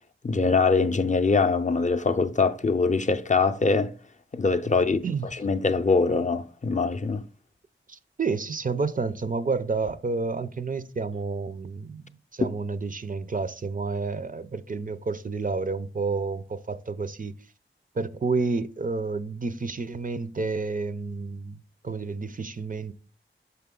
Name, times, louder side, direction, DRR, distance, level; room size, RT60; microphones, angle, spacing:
voice 1, 0.2-3.9 4.3-5.0 5.3-7.2, left 4 dB, 35° left, 0.5 m, -23 dB
voice 2, 7.9-17.3 17.9-21.6 21.8-22.9, right 4 dB, 40° right, 0.4 m, -30 dB
5.8 x 5.7 x 3.7 m
wide cardioid pair, 70°, 21 cm